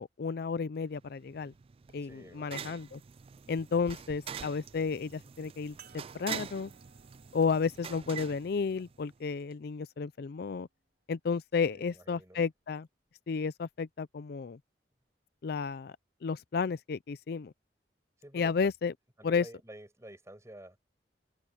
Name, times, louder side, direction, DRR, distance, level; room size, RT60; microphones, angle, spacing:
voice 1, 0.0-1.5 1.9-3.0 3.5-6.7 7.3-10.7 11.1-12.9 13.3-14.6 15.4-15.9 16.2-17.5 18.3-18.9 19.2-19.5, left 5 dB, 60° left, 0.4 m, -32 dB
sound 1, 0.9-9.3, right 7 dB, 35° right, 0.3 m, -45 dB
voice 2, 2.0-2.8 11.7-12.4 18.2-18.5 19.2-20.8, right 1 dB, 15° right, 5.4 m, -51 dB
sound 2, 5.8-10.6 11.4-11.5 13.6-13.7, right 6 dB, 60° right, 4.8 m, -61 dB
open air
head